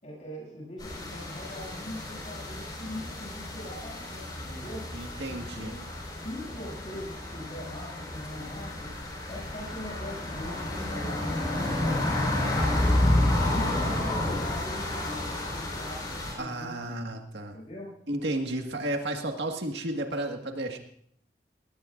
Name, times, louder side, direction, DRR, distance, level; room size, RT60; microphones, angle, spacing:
voice 1, 0.0-4.8 5.3-5.7 6.2-8.9 9.3-13.1 13.4-17.0 17.5-17.9, left 1 dB, 40° left, -3 dB, 7.6 m, -41 dB
sound 1, 0.8-16.3, left 1 dB, 25° left, 4.9 m, -30 dB
voice 2, 4.9-5.8 16.4-17.6 18.1-20.8, right 1 dB, 90° right, 3 dB, 1.8 m, -32 dB
19.0 x 17.5 x 2.6 m, 0.66 s
head